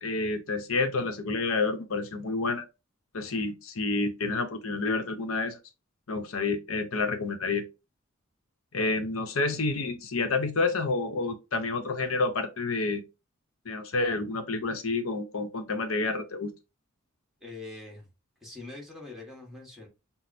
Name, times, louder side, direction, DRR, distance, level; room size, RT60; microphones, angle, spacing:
voice 1, 0.0-2.6 3.1-5.6 6.1-7.7 8.7-13.0 13.6-16.5, left 3 dB, 75° left, 0.8 m, -29 dB
voice 2, 17.4-18.1 18.4-19.9, left 3 dB, ahead, 1.4 m, -43 dB
5.9 x 2.0 x 2.6 m
head